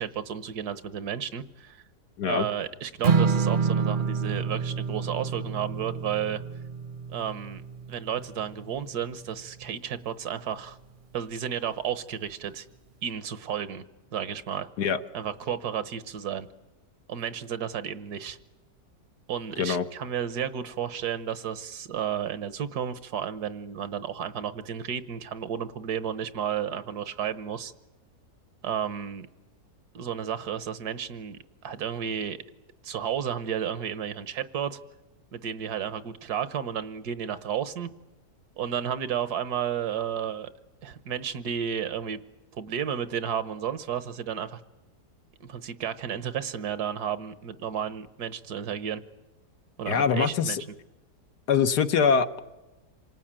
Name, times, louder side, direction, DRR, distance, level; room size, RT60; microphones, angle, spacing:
voice 1, 0.0-1.8 2.3-6.4 7.1-7.6 7.9-10.8 11.1-12.7 13.0-13.8 14.1-14.7 15.1-16.5 17.1-18.4 19.3-27.7 28.6-29.3 29.9-31.4 31.6-32.4 32.8-34.8 35.3-37.9 38.6-40.5 40.8-42.2 42.5-44.6 45.4-49.0 49.8-50.6, right 8 dB, 75° right, 14 dB, 1.5 m, -32 dB
Strum, 3.0-9.3, right 5 dB, 40° right, 0.8 m, -28 dB
voice 2, 49.9-50.6 51.5-52.4, left 6 dB, 80° left, 8 dB, 1.7 m, -23 dB
27.0 x 18.5 x 8.8 m, 1.1 s
omnidirectional pair, 1.7 m